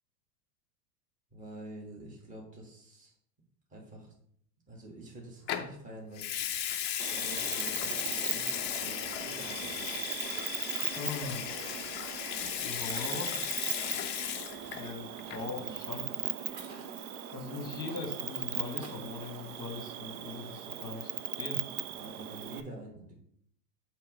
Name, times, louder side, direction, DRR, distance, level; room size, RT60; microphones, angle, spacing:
voice 1, 1.3-3.1 3.7-4.1 4.7-6.3 7.1-10.0 13.2-13.4 15.5-16.1 21.9-23.1, right 1 dB, 15° right, -2 dB, 1.6 m, -47 dB
Water tap faucet / Sink (filling or washing) / Liquid, 5.5-5.7 6.2-14.9 15.2-15.5, left 10 dB, 25° left, 0.4 m, -36 dB
Cricket, 7.0-22.6, right 10 dB, 60° right, 0.7 m, -39 dB
voice 2, 11.0-11.4 12.6-13.3 14.7-16.1 17.3-21.1 21.4-21.6, left 3 dB, 10° left, 3 dB, 1.4 m, -40 dB
sound 1, 11.5-19.0, right 3 dB, 80° right, 1.8 m, -55 dB
8.4 x 3.1 x 5.0 m, 0.68 s
supercardioid pair, 130°, 49 cm